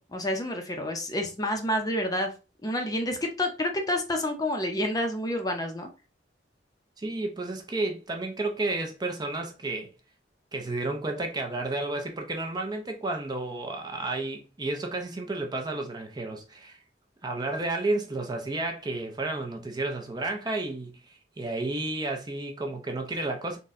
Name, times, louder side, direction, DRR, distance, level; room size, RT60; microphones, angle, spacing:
voice 1, 0.0-2.3 2.6-5.9, left 1 dB, 20° left, 0.6 m, -29 dB
voice 2, 7.0-9.9 10.5-16.8 17.2-23.6, right 2 dB, 25° right, 0.5 m, -32 dB
4.0 x 2.2 x 3.5 m
head